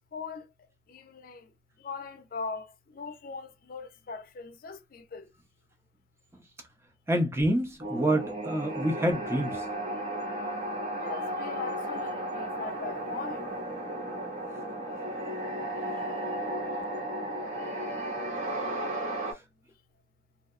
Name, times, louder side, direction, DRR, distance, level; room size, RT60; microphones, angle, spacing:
voice 1, 0.1-0.5 0.9-1.4 1.8-2.7 2.9-5.3 10.9-13.4, left 4 dB, 55° left, 0.5 m, -40 dB
voice 2, 7.1-9.6, right 1 dB, 15° right, 0.6 m, -27 dB
sound 1, 7.8-19.3, right 1 dB, 45° right, 0.9 m, -34 dB
2.7 x 2.0 x 2.3 m
head